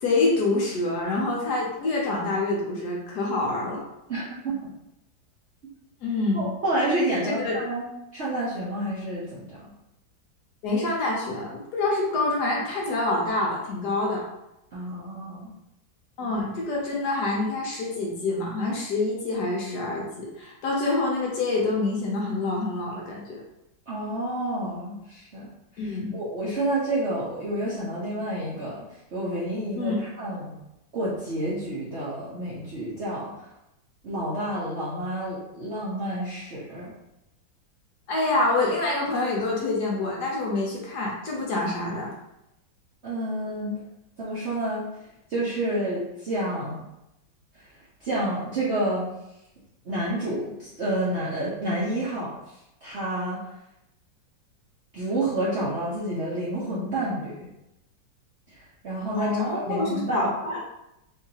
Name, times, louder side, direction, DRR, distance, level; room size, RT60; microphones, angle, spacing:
voice 1, 0.0-3.8 6.0-6.5 7.1-7.6 10.6-14.2 16.2-23.4 25.8-26.2 29.8-30.0 38.1-42.1 59.1-60.6, left 2 dB, 65° left, -3 dB, 1.1 m, -26 dB
voice 2, 4.1-4.7 6.3-7.9 8.1-9.7 14.7-15.5 23.9-25.5 25.7-28.8 29.1-30.5 30.9-33.3 34.0-36.9 43.0-43.8 44.2-44.8 45.3-46.8 48.0-49.1 49.8-52.3 52.8-53.4 54.9-57.5 58.8-60.3, right 1 dB, 55° right, -9 dB, 0.8 m, -29 dB
3.8 x 2.8 x 2.7 m, 0.87 s
omnidirectional pair, 2.1 m